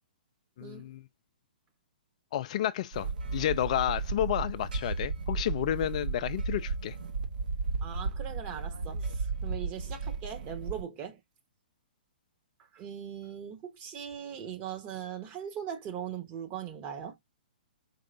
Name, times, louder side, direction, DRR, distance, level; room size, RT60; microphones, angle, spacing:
voice 1, 0.6-1.0 2.3-7.0, left 12 dB, 45° left, 0.3 m, -31 dB
sound 1, 2.9-10.8, right 4 dB, 65° right, 0.9 m, -34 dB
voice 2, 7.8-11.2 12.7-17.2, right 9 dB, 30° right, 1.1 m, -40 dB
4.7 x 3.3 x 2.5 m
figure-of-eight pair, 120°, 5 cm